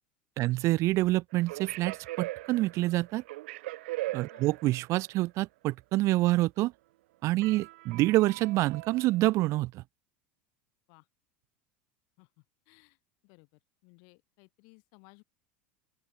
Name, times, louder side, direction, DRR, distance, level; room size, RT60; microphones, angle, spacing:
voice 1, 0.4-3.2 4.1-6.7 7.2-9.8, right 18 dB, 50° right, 0.8 m, -27 dB
sound 1, 1.3-5.0 7.4-9.5, right 19 dB, 75° right, 2.4 m, -40 dB
voice 2, 4.0-4.5 7.4-7.7 10.9-11.1 12.2-15.2, left 39 dB, 65° left, 7.4 m, -60 dB
open air
hypercardioid pair, 95°, 6 cm